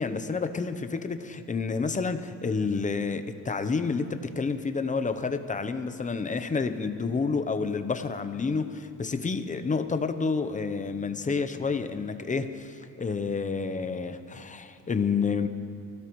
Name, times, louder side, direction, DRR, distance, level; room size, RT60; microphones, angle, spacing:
voice 1, 0.0-15.5, left 4 dB, 20° left, 10 dB, 0.7 m, -29 dB
24.0 x 16.5 x 3.1 m, 2.6 s
cardioid pair, 130°, 39 cm